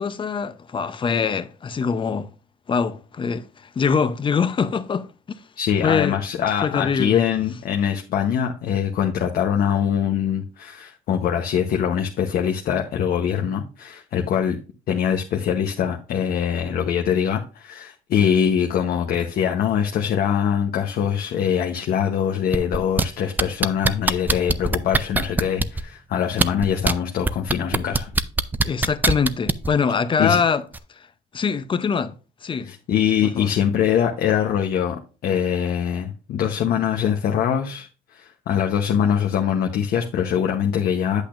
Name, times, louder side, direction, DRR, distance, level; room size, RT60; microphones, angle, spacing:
voice 1, 0.0-2.3 2.7-5.4 5.8-6.2 6.6-7.2 28.6-30.6 31.3-32.1 32.4-32.7 33.4-33.5, left 6 dB, 30° left, 0.6 m, -23 dB
voice 2, 5.6-14.6 14.9-28.1 30.2-30.4 32.7-41.2, left 8 dB, 60° left, 0.9 m, -23 dB
sound 1, 22.5-23.0 23.4-25.8 26.3-26.9 27.3-29.7 30.7-30.8, right 3 dB, 10° right, 0.4 m, -20 dB
8.5 x 8.2 x 2.5 m
cardioid pair, 110°, 17 cm